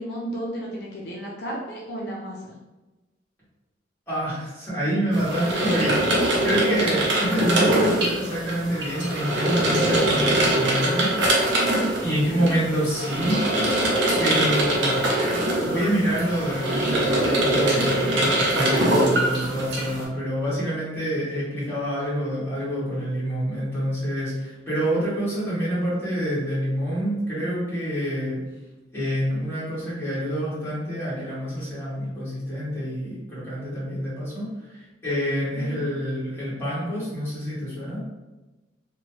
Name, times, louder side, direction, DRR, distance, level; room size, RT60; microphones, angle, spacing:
voice 1, 0.0-2.5 6.9-7.0 12.3-12.5 35.6-35.8, right 1 dB, 65° left, -4 dB, 0.5 m, -33 dB
voice 2, 4.1-11.5 12.0-13.4 14.2-15.1 15.6-28.4 28.9-38.0, equal, 15° left, -10 dB, 1.3 m, -27 dB
sound 1, 5.1-20.0, right 1 dB, 80° right, 0.7 m, -23 dB
2.9 x 2.2 x 3.0 m, 1.1 s
head